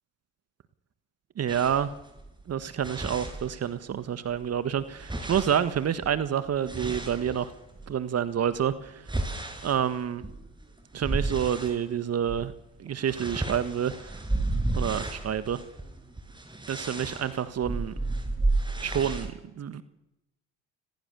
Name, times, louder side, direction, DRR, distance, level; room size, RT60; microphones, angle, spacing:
voice 1, 1.4-1.9 2.5-7.5 7.9-9.1 9.6-10.2 10.9-12.5 12.8-14.2 14.7-15.6 16.7-18.0 18.8-19.8, right 9 dB, 45° right, 13 dB, 1.7 m, -28 dB
sound 1, 1.5-4.0 4.3-7.9 8.5-11.8 12.2-12.5 12.8-19.3, right 2 dB, 15° right, 6.1 m, -33 dB
29.5 x 21.5 x 7.0 m, 0.92 s
hypercardioid pair, 65°, 34 cm